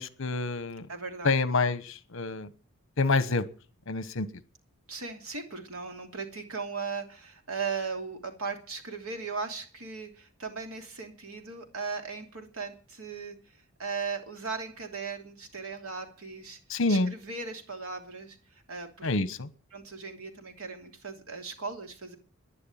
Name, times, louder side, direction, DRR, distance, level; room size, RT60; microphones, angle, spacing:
voice 1, 0.0-0.9 1.2-2.5 3.0-3.4 3.9-4.3 16.7-17.1 19.0-19.5, left 3 dB, 60° left, 14 dB, 1.2 m, -27 dB
voice 2, 0.9-1.3 4.9-13.4 13.8-16.6 16.9-18.4 18.7-19.1 19.7-22.2, right 4 dB, 75° right, 4 dB, 3.0 m, -37 dB
11.5 x 10.5 x 9.1 m, 0.41 s
head